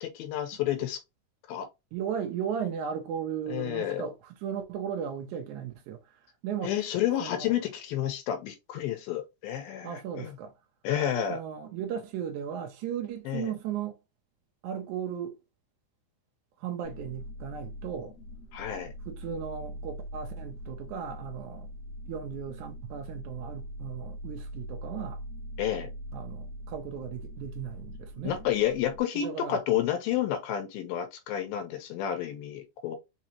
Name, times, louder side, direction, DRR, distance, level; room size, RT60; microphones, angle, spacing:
voice 1, 0.0-1.0 1.5-1.7 3.5-4.1 6.6-10.4 10.8-11.4 13.3-13.5 18.5-18.9 25.6-25.9 28.2-33.0, left 11 dB, 85° left, 2.6 m, -30 dB
voice 2, 1.9-6.0 6.4-6.7 7.2-7.5 9.8-10.5 11.3-14.0 14.6-15.3 16.6-18.1 19.1-21.7 22.1-25.2 26.1-28.4 29.2-29.6, right 8 dB, 80° right, 1.7 m, -36 dB
sound 1, 16.8-29.0, equal, 65° left, 1.6 m, -42 dB
5.8 x 2.8 x 2.9 m
omnidirectional pair, 4.3 m